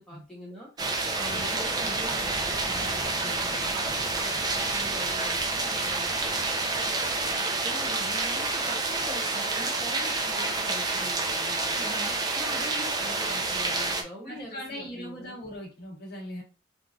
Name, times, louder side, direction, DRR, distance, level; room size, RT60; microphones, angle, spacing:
voice 1, 0.0-12.0 12.3-15.4, equal, 5° left, -5 dB, 1.3 m, -44 dB
sound 1, 0.8-14.0, right 3 dB, 20° right, 0.5 m, -28 dB
voice 2, 11.7-12.1 14.2-16.4, equal, 50° left, -3 dB, 1.5 m, -40 dB
4.8 x 2.4 x 2.6 m, 0.32 s
head